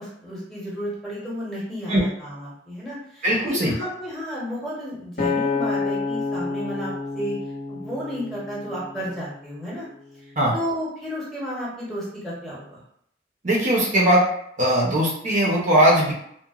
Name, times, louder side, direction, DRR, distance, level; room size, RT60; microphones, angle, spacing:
voice 1, 0.0-7.4 7.7-9.9 10.2-12.8, equal, ahead, -7 dB, 0.8 m, -32 dB
voice 2, 3.2-3.7 10.4-10.5 13.4-14.2 14.6-16.1, right 1 dB, 45° right, -4 dB, 0.6 m, -19 dB
Acoustic guitar, 5.2-9.5 10.1-10.4, left 4 dB, 50° left, 0.6 m, -29 dB
2.8 x 2.1 x 2.3 m, 0.71 s
head